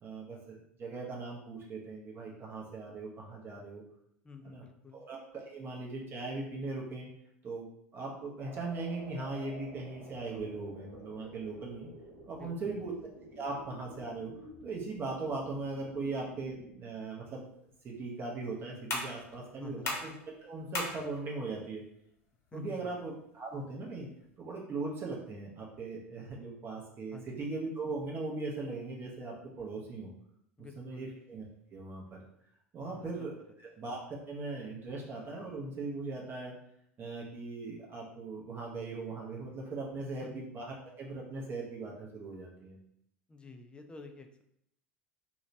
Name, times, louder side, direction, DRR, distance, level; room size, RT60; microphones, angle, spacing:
voice 1, 0.0-3.8 4.4-4.6 4.9-7.1 7.4-7.6 7.9-11.9 12.3-12.9 13.4-14.3 14.6-17.5 17.8-20.1 20.4-21.8 22.5-24.1 24.4-30.1 30.8-31.4 31.7-32.2 32.7-33.3 33.8-36.5 37.0-42.8, right 3 dB, 30° right, -2 dB, 0.7 m, -39 dB
voice 2, 4.2-5.0 12.3-12.9 19.6-20.0 22.5-23.0 27.1-27.4 30.6-31.2 32.8-33.3 40.2-40.4 43.3-44.4, left 3 dB, 15° left, 6 dB, 0.4 m, -50 dB
sound 1, 8.4-16.8, right 2 dB, 60° right, 1.0 m, -51 dB
sound 2, 17.4-24.4, left 2 dB, 40° left, 0.7 m, -43 dB
2.8 x 2.1 x 2.7 m, 0.74 s
figure-of-eight pair, 80°, 7 cm